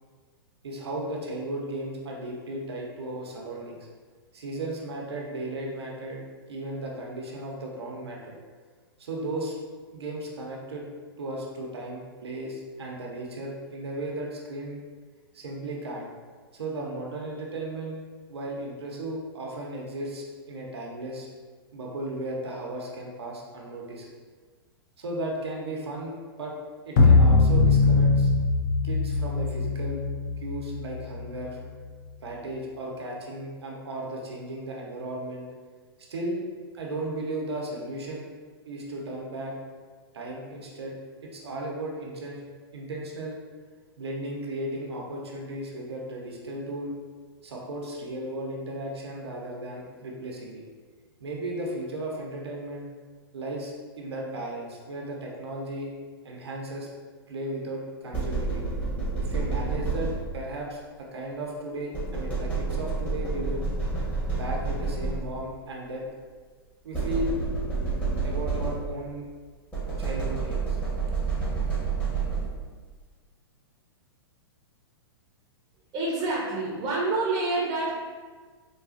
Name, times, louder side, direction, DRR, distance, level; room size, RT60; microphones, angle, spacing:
voice 1, 0.6-3.9 4.3-6.2 6.5-8.4 9.0-9.6 9.9-10.9 11.2-14.8 15.3-16.1 16.5-18.0 18.3-21.3 21.7-24.1 25.0-26.5 26.9-28.3 28.8-30.0 30.4-31.6 32.2-35.5 36.1-36.4 36.7-38.3 38.6-39.5 40.1-40.9 41.2-42.4 42.7-43.4 44.0-46.9 47.4-50.6 51.2-52.9 53.3-55.9 56.2-56.9 57.3-58.6 59.2-63.6 64.3-66.0 66.8-67.3 68.2-69.3 70.0-70.8, right 1 dB, 90° right, -2 dB, 0.8 m, -35 dB
sound 1, 27.0-31.4, left 3 dB, 50° left, 0.6 m, -21 dB
sound 2, 58.1-60.6 61.9-65.5 66.9-69.1 69.7-72.8, right 4 dB, 10° left, 1.0 m, -29 dB
voice 2, 75.9-77.9, right 2 dB, 30° right, -5 dB, 0.7 m, -27 dB
3.8 x 2.4 x 2.4 m, 1.5 s
hypercardioid pair, 135°, 13 cm